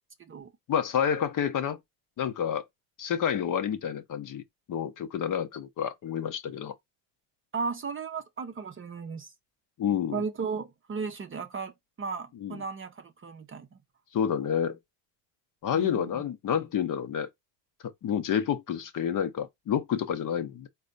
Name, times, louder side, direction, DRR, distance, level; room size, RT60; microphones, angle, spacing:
voice 1, 0.7-1.8 2.2-2.6 3.0-6.7 9.8-10.2 12.4-12.6 14.1-14.8 15.6-17.3 17.8-20.7, left 8 dB, 40° left, 0.8 m, -29 dB
voice 2, 7.5-9.3 10.1-13.8 15.7-16.2, right 5 dB, 25° right, 0.6 m, -35 dB
4.2 x 2.2 x 3.8 m
supercardioid pair, 85°, 49 cm